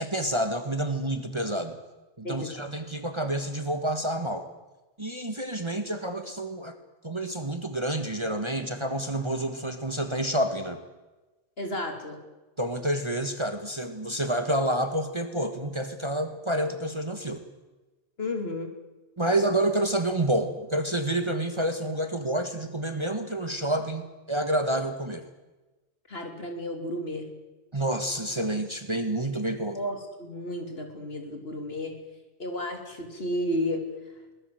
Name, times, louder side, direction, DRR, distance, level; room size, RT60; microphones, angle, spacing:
voice 1, 0.0-1.7 2.2-4.5 5.0-6.7 7.0-10.8 12.6-17.4 19.2-25.2 27.7-29.8, right 1 dB, 25° right, 7 dB, 1.6 m, -28 dB
voice 2, 2.2-2.6 11.6-12.2 18.2-18.7 26.1-27.3 29.7-31.9 32.4-33.8, left 1 dB, 60° left, 4 dB, 3.7 m, -32 dB
22.5 x 20.0 x 7.8 m, 1.1 s
omnidirectional pair, 1.2 m